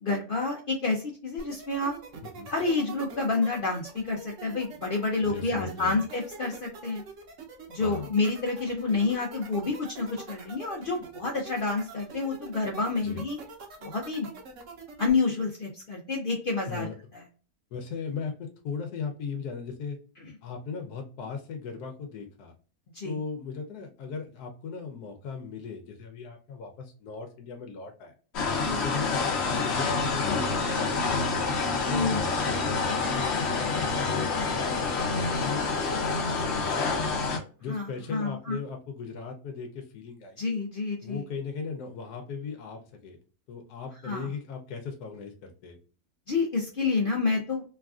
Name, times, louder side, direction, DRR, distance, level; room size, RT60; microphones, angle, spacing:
voice 1, 0.0-1.9 2.5-7.0 7.7-13.4 13.8-14.3 15.0-16.9 17.1-17.2 22.9-23.2 28.6-28.8 31.9-32.2 37.7-38.6 40.4-41.3 44.0-44.3 46.3-47.6, left 3 dB, 75° left, 0 dB, 0.5 m, -29 dB
sound 1, 1.4-15.1, right 4 dB, 60° right, 1.0 m, -44 dB
voice 2, 5.2-6.0 7.8-8.1 13.0-13.2 16.7-16.9 17.7-20.0 20.4-22.5 23.0-28.1 28.7-31.3 31.9-37.1 37.6-40.4 41.0-43.2 43.5-45.8, left 5 dB, 90° left, 3 dB, 1.2 m, -38 dB
sound 2, 28.3-37.4, left 4 dB, 55° left, 0.8 m, -27 dB
3.2 x 2.3 x 2.3 m, 0.40 s
omnidirectional pair, 1.6 m